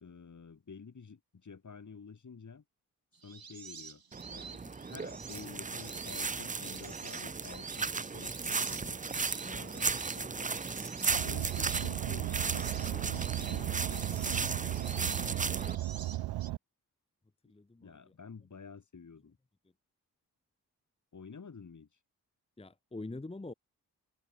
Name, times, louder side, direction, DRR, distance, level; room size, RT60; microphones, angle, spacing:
voice 1, 0.0-2.6 3.2-4.0 4.3-10.6 11.2-15.9 17.8-19.4 21.1-21.9, left 5 dB, 50° left, 2.3 m, -50 dB
sound 1, 3.1-16.5, right 6 dB, 65° right, 6.8 m, -49 dB
sound 2, 4.1-15.8, right 4 dB, 20° right, 0.6 m, -36 dB
Car, 11.1-16.6, right 15 dB, 85° right, 0.6 m, -35 dB
voice 2, 17.5-18.0 22.6-23.5, left 2 dB, 15° left, 1.0 m, -44 dB
supercardioid pair, 40°, 39 cm